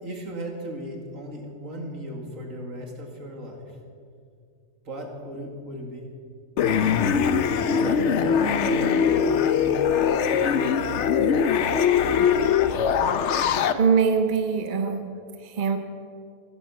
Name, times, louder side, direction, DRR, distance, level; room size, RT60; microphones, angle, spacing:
voice 1, 0.0-3.7 4.8-6.1 7.7-9.8 10.1-11.4, right 1 dB, 65° right, 2 dB, 2.5 m, -36 dB
sound 1, 6.6-13.7, left 7 dB, 60° left, 0.9 m, -22 dB
voice 2, 13.7-15.1 15.4-15.8, right 6 dB, 40° right, 6 dB, 0.9 m, -22 dB
15.5 x 10.5 x 7.1 m, 2.3 s
omnidirectional pair, 1.5 m